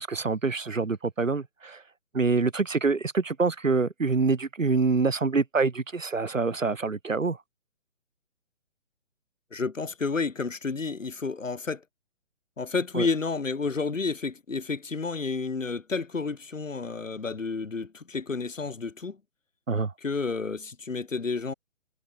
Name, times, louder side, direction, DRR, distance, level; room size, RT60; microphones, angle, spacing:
voice 1, 0.0-1.8 2.1-7.4 12.9-13.1 19.7-19.9, right 4 dB, 80° right, 3.9 m, -26 dB
voice 2, 9.5-11.8 12.6-19.2 20.0-21.5, left 4 dB, 75° left, 4.3 m, -30 dB
figure-of-eight pair, 145°, 38 cm